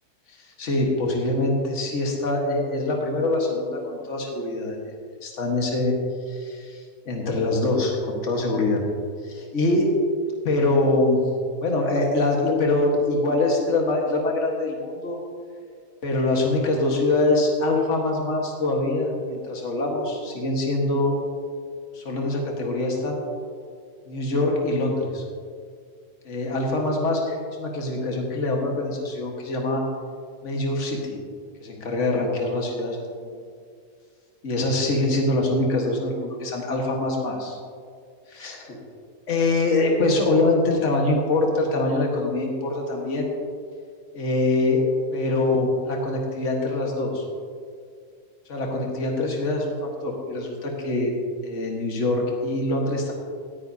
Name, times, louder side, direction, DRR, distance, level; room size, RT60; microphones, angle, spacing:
voice 1, 0.3-4.8 5.2-5.9 6.3-8.8 9.2-10.0 10.4-11.2 11.6-15.2 16.0-21.2 21.9-23.2 24.1-25.2 26.3-29.8 30.4-31.2 31.6-33.1 34.4-37.5 38.3-38.8 39.3-43.3 44.1-44.8 45.1-47.2 48.5-49.8 50.0-51.1 51.4-53.1, left 2 dB, 50° left, 0 dB, 1.8 m, -24 dB
18.0 x 9.7 x 2.8 m, 2.1 s
omnidirectional pair, 1.7 m